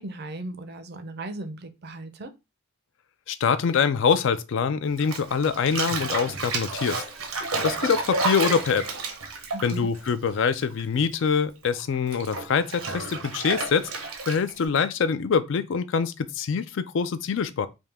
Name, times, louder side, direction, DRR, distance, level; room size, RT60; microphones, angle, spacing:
voice 1, 0.0-2.3 9.5-9.9, right 2 dB, 50° right, 0.5 m, -37 dB
voice 2, 3.3-7.0 7.6-8.9 9.6-13.9 14.3-17.7, left 6 dB, 65° left, 0.4 m, -24 dB
Bathtub (filling or washing), 5.0-10.8 11.1-14.6, right 3 dB, 80° right, 0.9 m, -31 dB
3.5 x 2.7 x 3.4 m
head